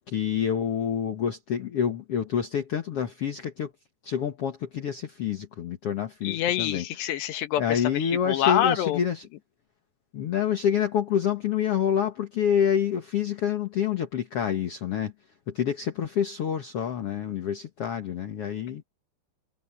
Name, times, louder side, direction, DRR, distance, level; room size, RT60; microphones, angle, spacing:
voice 1, 0.1-3.7 4.0-6.8 7.6-9.3 10.1-15.1 15.5-18.8, left 8 dB, 65° left, 1.5 m, -27 dB
voice 2, 6.2-9.0, left 11 dB, 85° left, 3.6 m, -26 dB
omnidirectional pair, 4.8 m